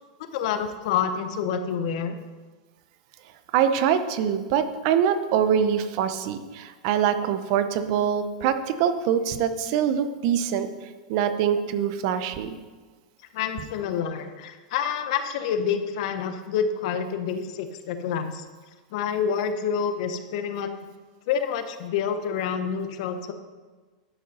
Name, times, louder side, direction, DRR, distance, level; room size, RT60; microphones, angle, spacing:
voice 1, 0.2-2.2 13.3-18.4 18.9-20.7 21.3-23.3, left 7 dB, 55° left, 8 dB, 0.9 m, -28 dB
voice 2, 3.5-10.7 11.1-12.5, right 8 dB, 50° right, 10 dB, 0.7 m, -24 dB
11.0 x 5.3 x 5.4 m, 1.4 s
supercardioid pair, 145°, 4 cm